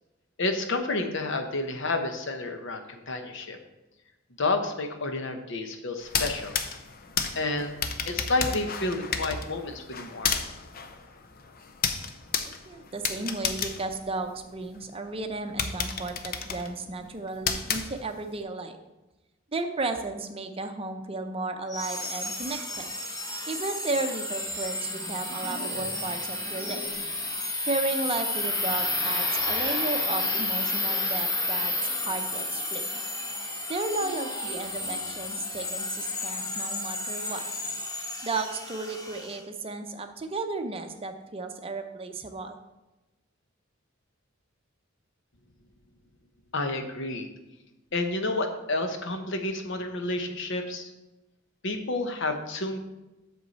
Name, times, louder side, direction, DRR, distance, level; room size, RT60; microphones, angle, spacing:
voice 1, 0.4-3.6 4.4-6.5 7.3-10.4 46.5-47.3 47.9-50.9 51.6-52.8, left 2 dB, 65° left, 6 dB, 0.9 m, -30 dB
sound 1, 6.0-14.8 15.2-15.3 15.6-18.4, left 6 dB, 50° left, 0.6 m, -32 dB
voice 2, 12.5-18.8 19.5-22.9 23.5-26.8 27.6-33.0 33.7-37.4 38.2-42.6, right 3 dB, 30° right, 6 dB, 0.7 m, -34 dB
sound 2, 21.7-39.4, left 2 dB, 20° left, 1.2 m, -31 dB
8.1 x 6.3 x 4.1 m, 1.0 s
head